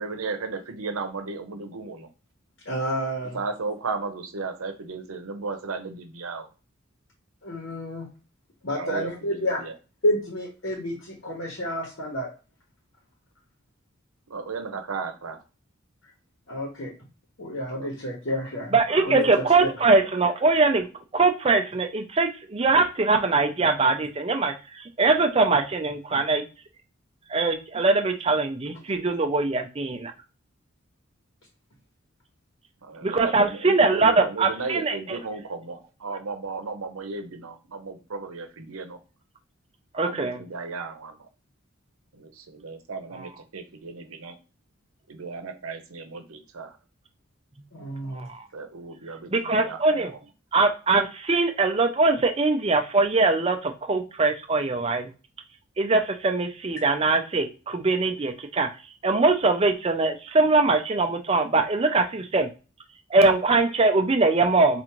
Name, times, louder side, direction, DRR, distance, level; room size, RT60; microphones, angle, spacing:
voice 1, 0.0-2.1 3.3-6.5 8.7-9.7 14.3-15.4 17.7-17.9 18.3-18.5 18.9-19.2 32.8-39.0 40.0-41.3 42.1-44.4 45.1-46.8 48.5-50.2, right 4 dB, 90° right, 7 dB, 0.8 m, -35 dB
voice 2, 2.7-3.4 7.4-8.1 8.6-9.6 10.0-12.3 16.5-16.9 17.4-18.7 19.0-19.2 19.6-19.7 47.7-48.3, equal, 60° left, -1 dB, 1.1 m, -29 dB
voice 3, 18.7-20.9 21.1-24.5 25.0-26.4 27.3-30.1 33.0-35.2 39.9-40.4 48.1-48.4 49.3-50.1 50.5-55.1 55.8-58.7 59.0-62.5 63.1-64.8, right 3 dB, 30° right, 6 dB, 0.5 m, -22 dB
4.7 x 2.5 x 3.0 m, 0.33 s
head